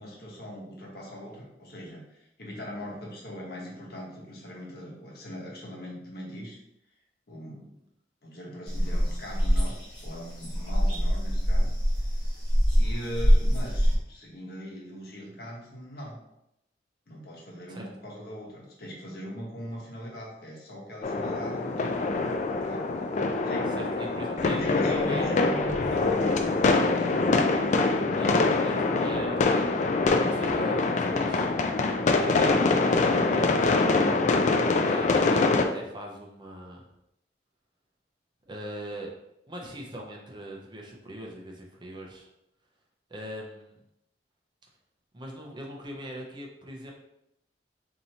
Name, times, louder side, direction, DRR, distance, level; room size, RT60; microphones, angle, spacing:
voice 1, 0.0-6.6 7.3-7.7 8.2-11.7 12.0-12.3 12.7-16.2 17.1-22.8 23.4-23.7 24.3-27.2, equal, 60° left, -3 dB, 1.0 m, -41 dB
sound 1, 8.7-13.9, equal, 25° left, 1.1 m, -24 dB
sound 2, 21.0-35.6, left 3 dB, 40° left, 0.3 m, -24 dB
voice 2, 23.7-25.4 28.1-29.8 30.3-31.5 32.2-36.8 38.5-39.1 39.5-42.3 43.1-43.8 45.1-46.9, right 1 dB, 25° right, -1 dB, 0.6 m, -40 dB
4.4 x 2.7 x 2.8 m, 0.82 s
head